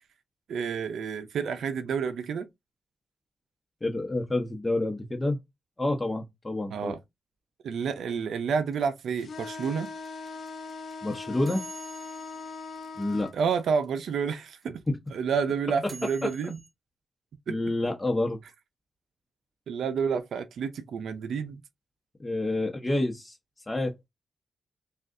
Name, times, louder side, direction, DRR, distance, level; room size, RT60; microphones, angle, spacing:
voice 1, 0.5-2.5 6.7-7.0 7.6-9.9 13.3-14.8 15.1-16.6 17.5-17.6 19.7-21.6, right 6 dB, 85° right, 0.5 m, -29 dB
voice 2, 3.8-5.4 5.8-6.9 11.0-11.7 13.0-13.3 14.9-15.0 17.5-18.4 22.2-23.4 23.7-23.9, left 2 dB, 20° left, 0.9 m, -28 dB
sound 1, 8.7-13.8 14.1-14.2 14.4-16.7, right 2 dB, 30° right, 3.1 m, -48 dB
sound 2, 9.2-13.3, left 4 dB, 70° left, 0.7 m, -40 dB
6.1 x 2.4 x 2.6 m
cardioid pair, 65°, 0 cm